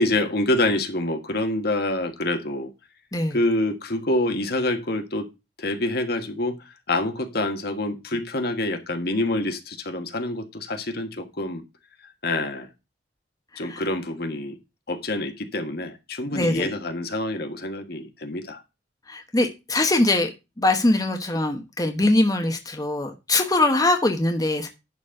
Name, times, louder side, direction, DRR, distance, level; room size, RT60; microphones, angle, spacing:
voice 1, 0.0-2.7 3.3-5.3 5.6-6.6 6.9-11.6 12.2-12.7 13.6-14.5 14.9-18.6, left 1 dB, 60° left, 1.5 m, -26 dB
voice 2, 16.3-16.7 19.1-20.3 20.6-24.7, left 2 dB, 20° left, 1.0 m, -22 dB
11.0 x 4.3 x 6.4 m
head